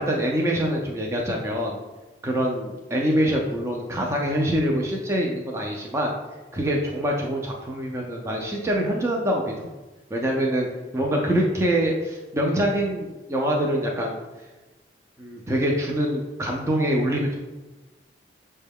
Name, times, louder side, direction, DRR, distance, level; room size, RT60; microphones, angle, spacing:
voice 1, 0.0-1.8 2.2-6.1 6.5-9.7 10.1-14.2 15.2-17.4, equal, 15° right, -1 dB, 0.4 m, -25 dB
6.2 x 2.2 x 3.5 m, 1.2 s
head